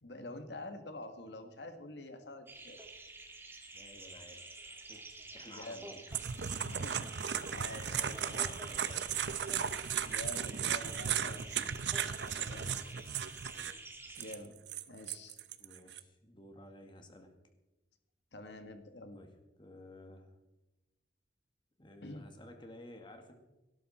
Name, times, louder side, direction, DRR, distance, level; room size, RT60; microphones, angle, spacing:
voice 1, 0.0-2.8 5.5-5.8 6.7-7.1 7.5-8.4 10.0-11.5 12.2-12.7 14.2-14.6 14.9-15.4 18.3-19.2 22.0-22.3, left 2 dB, 80° left, 7 dB, 1.8 m, -47 dB
sound 1, 2.5-14.3, right 2 dB, 15° right, 1.6 m, -50 dB
voice 2, 3.7-6.0 7.9-9.4 12.4-13.3 15.6-17.3 19.1-19.3 19.6-20.3 21.8-23.3, left 1 dB, 30° left, 5 dB, 2.1 m, -54 dB
sound 2, 6.1-13.7 14.2-16.0, right 8 dB, 80° right, 0.8 m, -36 dB
18.0 x 11.5 x 4.3 m, 1.0 s
head